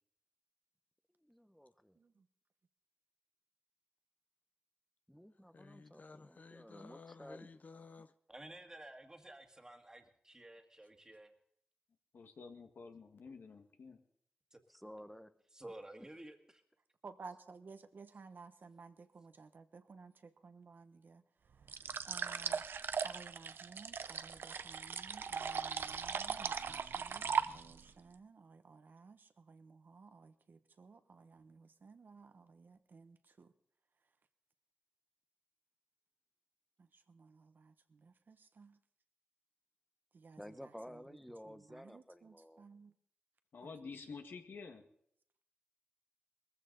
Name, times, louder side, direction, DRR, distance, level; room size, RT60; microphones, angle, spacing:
voice 1, 1.2-2.0 5.1-7.6 14.7-15.3 40.4-42.7, equal, ahead, 0.8 m, -53 dB
voice 2, 1.9-2.3 17.0-21.8 22.0-22.7 23.0-33.5 36.8-38.8 40.1-41.2 41.4-42.9 43.6-43.7, right 4 dB, 60° right, 1.1 m, -56 dB
voice 3, 5.5-8.1, left 4 dB, 45° left, 0.5 m, -55 dB
voice 4, 8.3-11.3 14.5-14.6 15.5-16.4, right 1 dB, 20° right, 1.9 m, -52 dB
voice 5, 12.1-14.0 43.5-44.9, left 4 dB, 80° left, 1.7 m, -50 dB
sound 1, 21.7-27.9, right 6 dB, 80° right, 0.6 m, -38 dB
20.5 x 15.0 x 4.0 m
wide cardioid pair, 95°, 4 cm